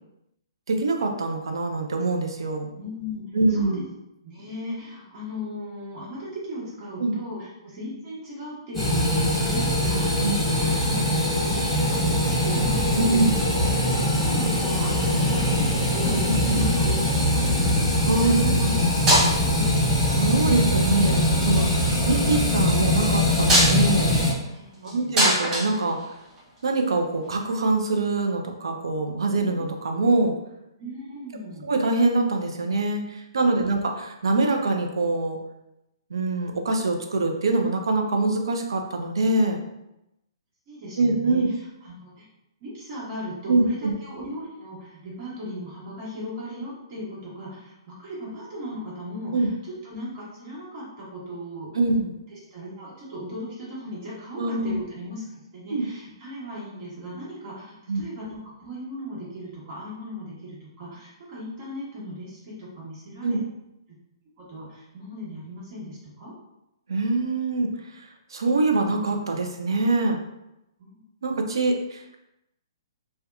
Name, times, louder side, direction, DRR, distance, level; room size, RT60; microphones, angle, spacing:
voice 1, 0.7-2.7 3.3-3.8 7.0-7.2 10.2-10.4 13.0-13.4 16.2-16.7 18.0-18.7 20.2-24.1 24.8-26.0 26.6-30.3 31.6-35.4 36.1-39.6 41.0-41.5 43.5-43.9 49.3-49.5 51.7-52.1 54.4-54.8 55.7-55.9 57.9-58.0 63.2-63.4 66.9-68.0 68.3-70.2 71.2-72.2, right 2 dB, 70° right, 3 dB, 0.4 m, -24 dB
voice 2, 2.8-3.8 4.2-13.4 13.8-16.9 17.3-18.5 19.4-19.9 24.5-25.2 30.8-31.7 33.6-33.8 40.7-42.3 42.6-51.7 52.3-63.4 63.9-64.0 64.4-66.3 70.8-71.0, equal, 40° right, -7 dB, 1.2 m, -37 dB
sound 1, 8.7-24.3, left 1 dB, 5° left, 1.0 m, -22 dB
sound 2, 17.2-17.4 18.6-18.8 19.1-19.7 20.6-21.1 23.2-26.6 27.9-28.0, right 1 dB, 20° right, 0.7 m, -23 dB
2.7 x 2.1 x 2.3 m, 0.89 s
figure-of-eight pair, 125°, 3 cm